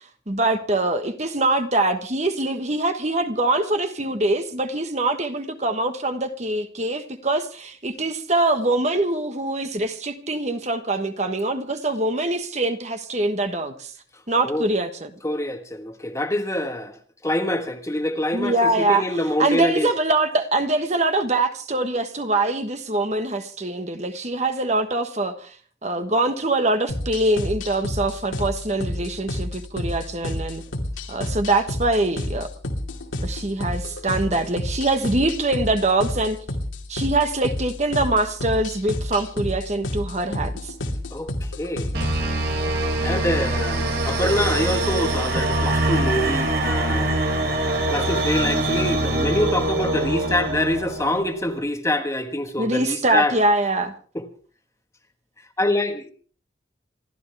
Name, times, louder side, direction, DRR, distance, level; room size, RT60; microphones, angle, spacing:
voice 1, 0.3-13.9 14.3-15.1 18.3-19.0 19.4-25.5 25.8-30.6 31.1-32.5 33.2-36.4 36.9-40.7 52.6-53.9, right 2 dB, 35° right, 1.3 m, -23 dB
voice 2, 15.2-19.9 34.3-34.4 41.1-41.9 43.0-47.2 47.9-53.3 54.1-54.2 55.6-56.0, left 1 dB, 15° left, 1.4 m, -25 dB
sound 1, 26.9-42.2, left 1 dB, 85° left, 2.5 m, -30 dB
sound 2, 41.9-51.4, right 2 dB, 55° right, 3.7 m, -23 dB
27.5 x 12.5 x 3.4 m
head